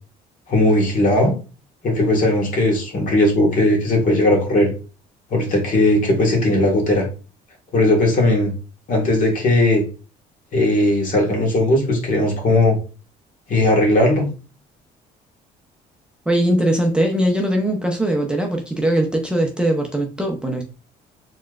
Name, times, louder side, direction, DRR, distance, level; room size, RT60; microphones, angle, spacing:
voice 1, 0.5-1.3 1.8-4.7 5.3-7.0 7.7-8.5 8.9-9.8 10.5-12.8 13.5-14.3, left 1 dB, 50° left, 1.7 m, -17 dB
voice 2, 16.3-20.7, right 1 dB, 5° right, 0.6 m, -20 dB
4.4 x 3.1 x 2.5 m
cardioid pair, 110°, 17 cm